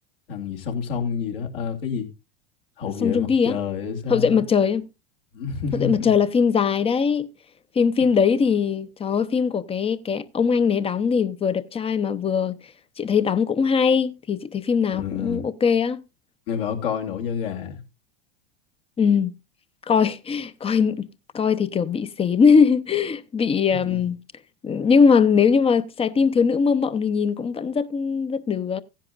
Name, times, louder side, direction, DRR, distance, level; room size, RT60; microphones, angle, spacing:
voice 1, 0.3-2.1 2.8-4.4 5.3-6.1 14.9-15.4 16.5-17.8 23.8-24.0, left 7 dB, 70° left, 2.7 m, -29 dB
voice 2, 3.0-3.6 4.1-4.8 5.7-7.3 7.8-12.6 13.0-16.0 19.0-19.3 19.9-21.1 21.3-24.2 24.6-28.8, left 6 dB, 20° left, 0.7 m, -21 dB
15.5 x 10.0 x 2.5 m
hypercardioid pair, 95°, 30 cm